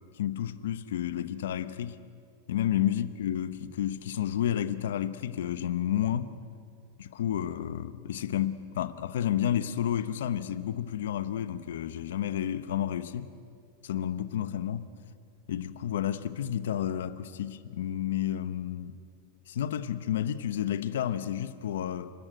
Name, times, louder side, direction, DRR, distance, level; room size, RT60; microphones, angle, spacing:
voice 1, 0.1-2.0 2.5-6.3 7.0-13.3 13.8-14.9 15.5-19.0 19.5-22.1, left 10 dB, 85° left, 13 dB, 0.9 m, -31 dB
29.0 x 13.0 x 9.1 m, 2.3 s
supercardioid pair, 175°, 0 cm